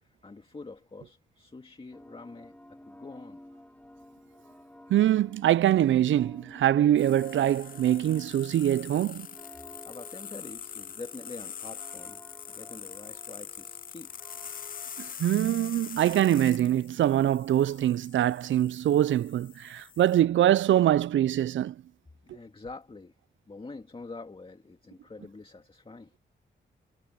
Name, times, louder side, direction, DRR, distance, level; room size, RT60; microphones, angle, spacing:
voice 1, 0.0-3.4 9.9-12.2 12.5-14.2 22.2-23.2 23.5-26.1, left 3 dB, 30° left, 2.1 m, -45 dB
sound 1, 1.9-15.1, left 1 dB, 10° left, 6.9 m, -53 dB
voice 2, 4.9-9.3 15.0-21.7, right 12 dB, 85° right, 0.4 m, -24 dB
sound 2, 7.0-20.2, left 8 dB, 45° left, 0.4 m, -44 dB
wide cardioid pair, 105°, 19 cm